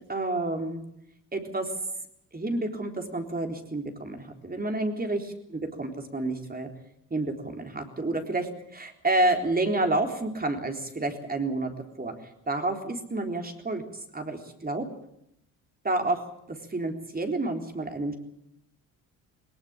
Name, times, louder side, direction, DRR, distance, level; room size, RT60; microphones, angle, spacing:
voice 1, 0.1-0.8 1.3-1.7 2.3-5.2 5.5-6.7 7.1-11.7 12.0-12.1 12.5-13.8 14.1-14.9 15.8-16.2 16.5-18.1, right 2 dB, 20° right, 4 dB, 3.8 m, -29 dB
20.0 x 19.0 x 8.9 m, 0.77 s
supercardioid pair, 70°, 40 cm